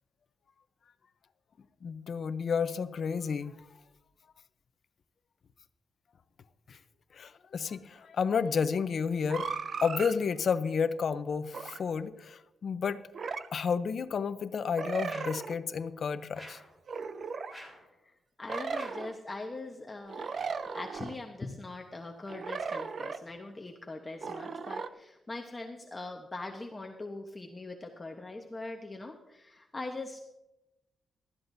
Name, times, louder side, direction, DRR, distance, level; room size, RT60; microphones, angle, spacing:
voice 1, 1.8-3.6 6.7-6.8 7.1-9.5 9.8-13.0 13.5-16.6, left 6 dB, 50° left, 12 dB, 0.7 m, -31 dB
sound 1, 9.3-10.1 11.5-11.8 13.1-13.5 14.8-15.6 16.9-17.5 18.5-19.2 20.1-21.2 22.3-23.2 24.2-24.9, right 5 dB, 45° right, 0.6 m, -36 dB
sound 2, 15.0-15.5 16.3-16.7 17.5-17.9 18.7-19.1, equal, 10° right, 3.7 m, -48 dB
voice 2, 18.4-20.3 20.7-30.2, left 2 dB, 20° left, 3 dB, 1.0 m, -41 dB
19.0 x 13.0 x 2.7 m, 0.96 s
wide cardioid pair, 150°, 0 cm